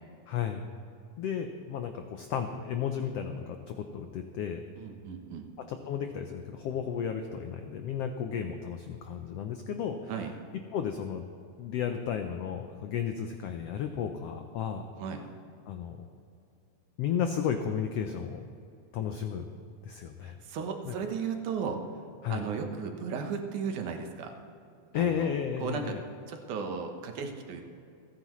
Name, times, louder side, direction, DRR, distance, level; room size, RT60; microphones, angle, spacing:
voice 1, 0.3-0.6 1.2-4.6 5.7-10.1 10.7-11.2 11.6-14.9 15.7-16.0 17.0-18.4 18.9-19.5 19.8-20.4 20.8-20.9 22.2-22.4 24.9-26.0, left 8 dB, 85° left, 6 dB, 1.3 m, -33 dB
voice 2, 4.8-5.5 10.1-10.3 15.0-15.2 20.2-21.8 22.3-24.4 24.9-25.3 25.6-26.0 26.3-27.6, right 6 dB, 75° right, 4 dB, 2.5 m, -35 dB
29.0 x 9.7 x 3.1 m, 2.6 s
omnidirectional pair, 3.6 m